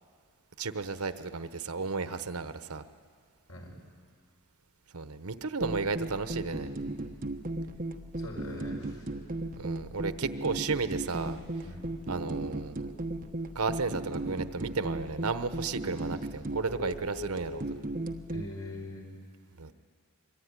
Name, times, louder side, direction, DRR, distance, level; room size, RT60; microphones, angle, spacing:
voice 1, 0.6-2.8 4.9-6.7 9.6-11.4 12.1-12.8 13.5-17.6 19.6-19.7, right 4 dB, 80° right, 11 dB, 1.1 m, -33 dB
sound 1, 5.6-18.5, right 1 dB, 40° right, 1.2 m, -36 dB
voice 2, 8.2-9.1 11.6-11.9 18.3-19.1, left 1 dB, 70° left, 1 dB, 5.6 m, -42 dB
26.0 x 23.0 x 9.8 m, 2.1 s
head